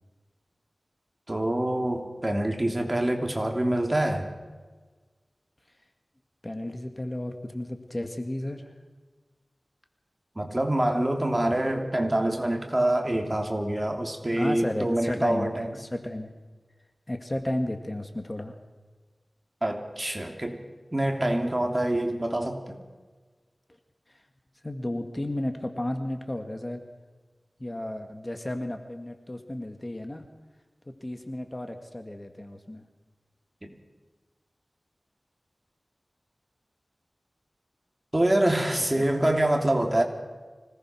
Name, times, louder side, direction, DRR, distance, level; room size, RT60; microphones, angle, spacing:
voice 1, 1.3-4.3 10.3-15.7 19.6-20.6 20.9-22.8 33.6-33.7 38.1-40.0, right 1 dB, 25° right, 3 dB, 3.2 m, -26 dB
voice 2, 6.4-8.7 14.3-16.3 17.1-18.6 20.3-20.4 24.6-26.8 27.6-30.3 30.9-32.8 38.9-39.3, left 1 dB, 25° left, 6 dB, 1.9 m, -33 dB
25.5 x 18.5 x 6.3 m, 1.4 s
wide cardioid pair, 65°, 0 cm